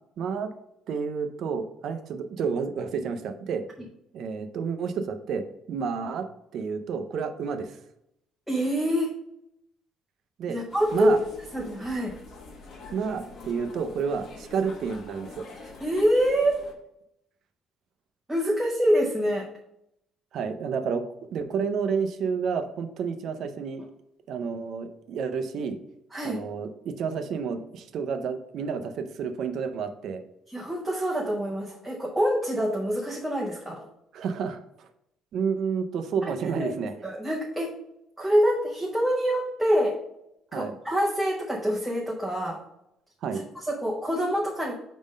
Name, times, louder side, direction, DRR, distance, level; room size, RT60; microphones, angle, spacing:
voice 1, 0.2-0.5 0.9-3.6 4.1-6.3 6.5-7.8 10.4-10.6 10.9-11.2 12.9-15.4 20.3-21.0 21.3-23.8 24.3-25.8 26.2-30.2 34.1-34.9 35.3-36.9 40.5-40.7 43.2-43.4, right 6 dB, 50° right, 8 dB, 0.5 m, -30 dB
voice 2, 8.5-9.1 10.5-11.2 11.5-12.1 15.8-16.6 18.3-19.5 26.1-26.4 30.5-33.9 36.3-36.7 37.0-37.8 38.2-40.0 40.5-42.6 43.3-44.7, equal, 5° right, -3 dB, 0.6 m, -26 dB
sound 1, 10.7-16.7, left 3 dB, 45° left, 1.0 m, -45 dB
5.0 x 3.6 x 5.2 m, 0.80 s
cardioid pair, 175°, 0 cm